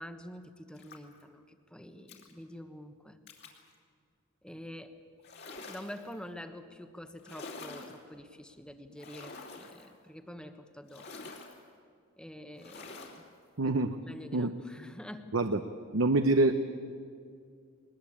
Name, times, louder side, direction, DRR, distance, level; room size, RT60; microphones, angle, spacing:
voice 1, 0.0-3.2 4.4-4.9 5.5-11.3 12.2-13.2 13.6-13.7 14.0-15.3, equal, 5° left, 8 dB, 1.2 m, -47 dB
sound 1, 0.8-1.2 2.1-2.3 3.3-3.6 5.2-6.1 7.2-8.0 9.0-9.9 10.9-11.6 12.6-13.2, left 3 dB, 50° left, 3.0 m, -47 dB
voice 2, 13.6-14.0 14.3-14.5 15.3-15.6 15.9-16.6, right 2 dB, 65° right, 8 dB, 0.9 m, -25 dB
21.5 x 20.0 x 8.7 m, 2.2 s
head